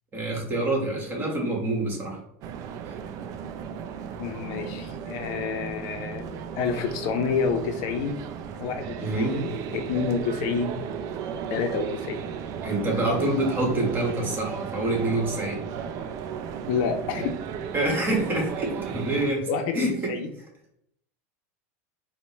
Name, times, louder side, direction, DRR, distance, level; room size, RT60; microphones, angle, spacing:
voice 1, 0.1-2.2 9.0-9.4 12.6-15.6 17.7-19.5 19.7-20.1, right 2 dB, 25° right, 0 dB, 1.3 m, -26 dB
sound 1, 2.4-19.3, right 7 dB, 45° right, 0.3 m, -35 dB
voice 2, 4.2-8.2 8.6-10.7 11.5-12.2 16.7-17.3 19.5-20.3, left 5 dB, 55° left, 6 dB, 0.5 m, -29 dB
4.3 x 2.1 x 3.0 m, 0.74 s
supercardioid pair, 125°, 8 cm